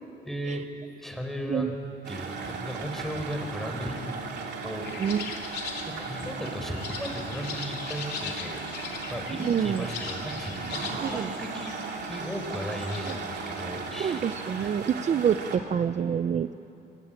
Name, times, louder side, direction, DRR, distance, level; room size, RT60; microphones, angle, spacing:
voice 1, 0.3-0.7 1.0-1.8 2.1-4.2 4.6-5.2 5.8-8.6 9.1-11.7 12.1-14.8, equal, ahead, 3 dB, 4.3 m, -36 dB
sound 1, 2.0-15.6, right 5 dB, 70° right, 2.9 m, -37 dB
sound 2, 4.8-13.2, left 6 dB, 70° left, 3.2 m, -40 dB
voice 2, 5.0-5.3 9.3-9.8 11.0-11.3 14.0-16.5, right 8 dB, 40° right, 11 dB, 0.5 m, -27 dB
27.5 x 23.5 x 8.9 m, 2.8 s
cardioid pair, 135°, 18 cm